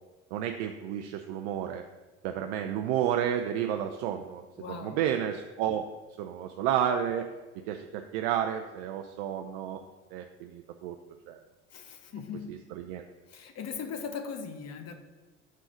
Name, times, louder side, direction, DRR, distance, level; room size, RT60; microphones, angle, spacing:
voice 1, 0.3-1.8 2.2-5.9 6.2-7.3 7.7-9.8 10.1-11.0 11.3-11.4 12.5-13.0, right 9 dB, 70° right, 5 dB, 0.5 m, -31 dB
voice 2, 4.6-5.1 11.7-12.5 13.3-14.9, left 6 dB, 45° left, 7 dB, 1.0 m, -39 dB
6.5 x 3.8 x 4.9 m, 1.2 s
hypercardioid pair, 65°, 35 cm